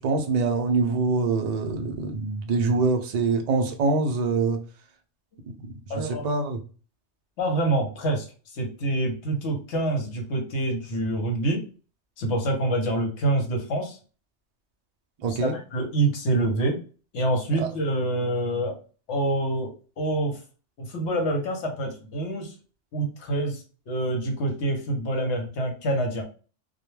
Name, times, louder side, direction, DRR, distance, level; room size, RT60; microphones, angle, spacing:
voice 1, 0.0-4.6 5.5-5.6 5.9-6.6 15.2-15.6 17.6-17.7, right 3 dB, 60° right, 5 dB, 0.4 m, -24 dB
voice 2, 5.9-6.3 7.4-8.3 8.5-11.6 12.2-14.0 15.3-16.8 17.1-18.8 19.1-20.4 20.8-22.5 22.9-26.2, right 2 dB, 75° left, 2 dB, 1.0 m, -26 dB
2.2 x 2.1 x 3.1 m, 0.36 s
omnidirectional pair, 1.2 m